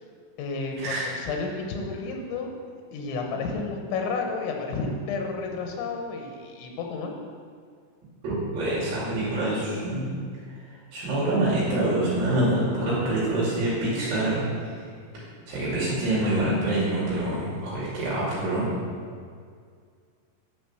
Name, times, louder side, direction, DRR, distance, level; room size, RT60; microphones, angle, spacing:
voice 1, 0.4-2.5 2.9-7.1, left 4 dB, 90° left, 2 dB, 3.5 m, -31 dB
voice 2, 8.2-10.1 10.9-14.4 15.5-18.7, right 1 dB, 65° right, -8 dB, 4.5 m, -26 dB
10.0 x 6.2 x 6.0 m, 2.1 s
omnidirectional pair, 5.3 m